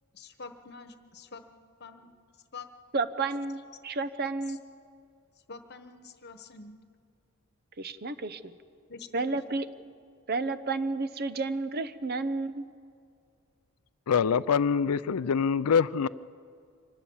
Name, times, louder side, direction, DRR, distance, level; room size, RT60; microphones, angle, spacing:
voice 1, 0.1-1.5 1.8-2.1 2.5-2.7 3.2-3.3 4.5-4.6 5.5-6.8 8.9-9.6, left 4 dB, 50° left, 1.2 m, -46 dB
voice 2, 2.9-4.6 7.8-8.6 9.1-9.6 10.3-12.7, right 3 dB, 45° right, 0.7 m, -31 dB
voice 3, 14.1-16.1, left 6 dB, 85° left, 0.5 m, -24 dB
24.5 x 19.0 x 7.1 m
head